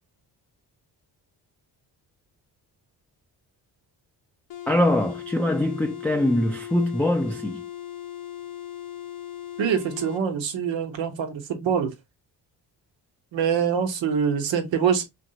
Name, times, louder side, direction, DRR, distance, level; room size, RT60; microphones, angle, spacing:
sound 1, 4.5-10.3, left 11 dB, 50° left, 0.6 m, -38 dB
voice 1, 4.7-7.6, left 1 dB, 5° left, 0.3 m, -23 dB
voice 2, 9.6-11.9 13.3-15.0, right 7 dB, 80° right, 0.9 m, -24 dB
2.9 x 2.5 x 2.7 m
cardioid pair, 65°, 44 cm